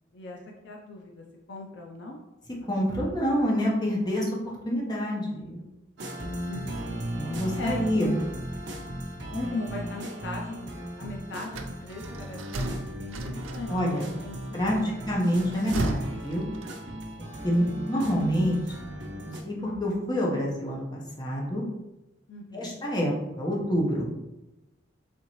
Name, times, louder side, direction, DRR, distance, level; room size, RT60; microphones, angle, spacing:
voice 1, 0.6-2.2 3.0-3.2 6.4-7.1 7.5-7.9 9.3-10.7 11.0-15.3 17.5-17.8 22.3-22.8, left 2 dB, 60° left, 0 dB, 0.5 m, -39 dB
voice 2, 2.7-4.3 4.6-5.7 7.1-8.1 13.7-14.1 14.5-16.5 17.4-18.6 18.9-21.6 22.5-24.1, equal, 20° left, -3 dB, 0.9 m, -27 dB
sound 1, 6.0-19.4, equal, 65° right, 0.8 m, -37 dB
sound 2, 11.4-14.0 15.3-17.1, right 1 dB, 90° right, 0.5 m, -34 dB
4.3 x 3.6 x 3.0 m, 0.96 s
head